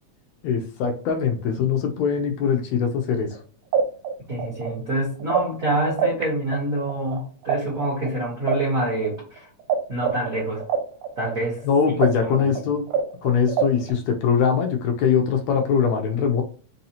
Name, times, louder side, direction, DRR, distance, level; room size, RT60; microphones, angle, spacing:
voice 1, 0.4-3.3 11.7-12.9 13.2-16.4, left 6 dB, 75° left, 4 dB, 1.7 m, -22 dB
sound 1, 3.3-3.4 3.7-6.2 6.5-9.8 10.0-13.9, right 8 dB, 70° right, 1.5 m, -25 dB
voice 2, 4.3-9.5 9.9-10.6 11.2-11.6 12.2-12.6, right 1 dB, 90° right, -4 dB, 0.7 m, -26 dB
4.7 x 2.7 x 2.8 m, 0.41 s
omnidirectional pair, 3.5 m